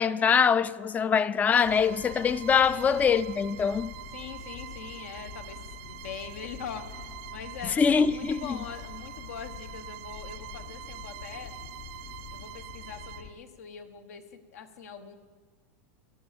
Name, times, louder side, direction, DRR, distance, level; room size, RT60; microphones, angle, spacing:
voice 1, 0.0-3.9 7.8-8.6, left 6 dB, 20° left, 0.3 m, -24 dB
Bowed string instrument, 1.5-13.3, right 12 dB, 65° right, 0.5 m, -45 dB
sound 1, 1.6-13.3, left 7 dB, 60° left, 1.0 m, -46 dB
voice 2, 2.6-3.3 4.1-11.5 12.3-15.2, left 7 dB, 80° left, 1.2 m, -43 dB
15.5 x 10.0 x 5.1 m
supercardioid pair, 125°, 8 cm